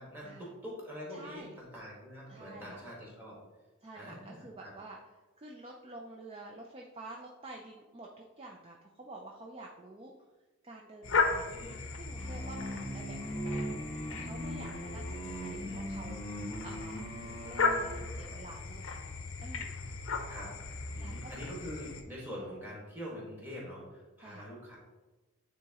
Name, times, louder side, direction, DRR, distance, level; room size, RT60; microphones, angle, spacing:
voice 1, 0.0-3.3 3.9-4.7 11.5-11.8 15.2-15.9 20.3-20.5 20.9-24.8, equal, 10° right, -5 dB, 1.6 m, -45 dB
voice 2, 1.1-1.5 2.3-2.8 3.8-5.0 5.4-10.1 10.6-11.5 11.9-17.1 17.4-19.0 19.4-19.7 21.0-21.3 24.2-24.5, right 2 dB, 25° right, 0 dB, 0.4 m, -49 dB
sound 1, 11.0-22.0, left 4 dB, 60° left, 0.6 m, -36 dB
sound 2, 12.2-18.0, equal, 5° left, 1.1 m, -40 dB
9.1 x 3.6 x 2.9 m, 1.2 s
head